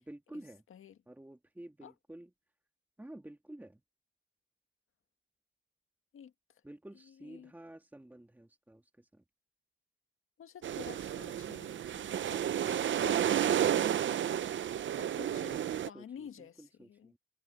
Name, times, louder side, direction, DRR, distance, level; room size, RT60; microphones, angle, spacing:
voice 1, 0.0-0.6 1.1-2.3 3.0-3.8 6.6-9.2 15.3-17.2, right 1 dB, 10° right, 2.0 m, -51 dB
voice 2, 10.4-14.4 14.9-15.6 15.9-17.1, left 8 dB, 90° left, 1.7 m, -51 dB
sound 1, 10.6-15.9, right 10 dB, 65° right, 0.6 m, -31 dB
wide cardioid pair, 140°, 21 cm